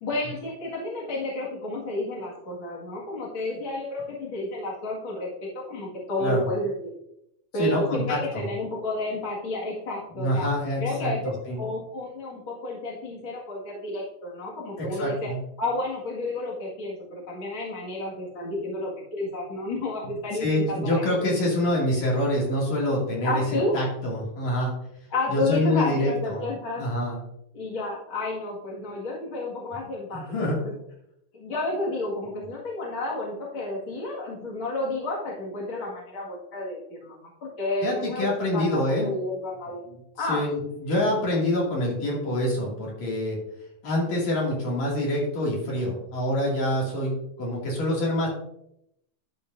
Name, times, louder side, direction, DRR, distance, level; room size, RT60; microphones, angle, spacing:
voice 1, 0.0-6.9 7.5-10.5 10.8-11.3 11.6-15.3 15.6-21.3 23.2-23.9 25.1-26.8 27.5-30.7 31.3-39.8 40.2-40.4, left 2 dB, 45° left, -5 dB, 2.5 m, -31 dB
voice 2, 7.6-8.5 10.1-11.6 14.8-15.4 20.4-23.4 23.7-24.7 25.3-26.4 26.8-27.2 30.1-30.6 37.8-39.1 40.3-43.4 43.8-48.3, left 1 dB, 65° left, -3 dB, 3.6 m, -26 dB
12.0 x 6.9 x 2.6 m, 0.78 s
omnidirectional pair, 3.4 m